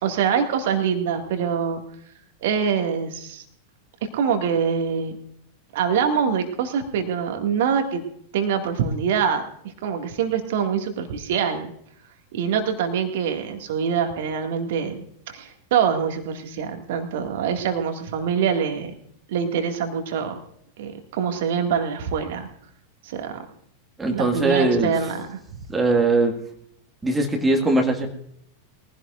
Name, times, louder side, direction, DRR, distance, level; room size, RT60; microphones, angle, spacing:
voice 1, 0.0-1.8 2.4-3.4 4.1-5.2 5.7-8.0 8.3-9.5 9.8-11.7 12.3-18.9 19.3-20.4 20.8-22.5 23.0-23.4 24.1-25.4, right 7 dB, 55° right, 5 dB, 2.2 m, -24 dB
voice 2, 24.0-24.9 25.7-26.4 27.0-28.1, right 2 dB, 10° right, 2 dB, 2.1 m, -20 dB
22.5 x 16.0 x 2.6 m, 0.70 s
figure-of-eight pair, 90°, 0 cm